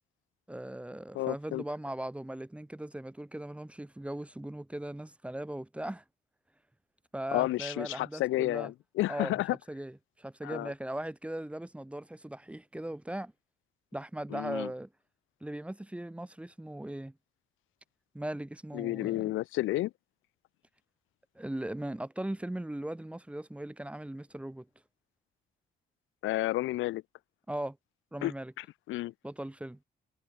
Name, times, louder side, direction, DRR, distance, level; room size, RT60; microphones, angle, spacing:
voice 1, 0.5-6.0 7.1-8.7 9.1-9.3 9.7-13.3 13.9-14.9 15.4-17.1 18.1-19.3 21.4-24.7 27.5-27.8 28.1-28.5 29.2-29.8, right 1 dB, 5° right, 0.8 m, -39 dB
voice 2, 1.1-1.6 7.3-9.6 10.4-10.7 14.3-14.7 18.7-19.9 26.2-27.0 28.2-28.3 28.6-29.1, left 16 dB, 80° left, 0.6 m, -31 dB
cardioid pair, 90°, 20 cm